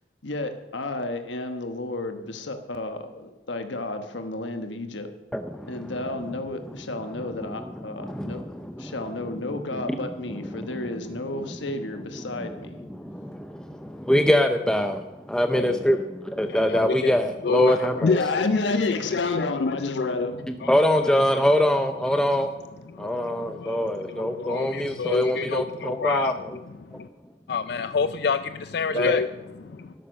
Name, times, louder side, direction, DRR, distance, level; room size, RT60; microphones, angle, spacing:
voice 1, 0.2-5.1 5.7-8.4 8.8-12.8 15.5-16.0 18.1-20.4, left 2 dB, 85° left, 7 dB, 1.2 m, -32 dB
voice 2, 5.3-5.9 7.4-7.5 8.0-8.9 9.7-9.8 10.5-10.7 12.9-16.0 16.2-18.2 20.7-22.5 23.0-26.6 26.9-27.0 28.9-29.2, equal, 5° left, 6 dB, 0.5 m, -24 dB
voice 3, 16.5-20.3 20.6-20.7 21.0-21.5 22.1-22.3 22.9-26.3 26.6-27.1 27.5-29.9, left 5 dB, 60° left, 12 dB, 0.4 m, -28 dB
12.5 x 11.5 x 6.4 m, 1.1 s
head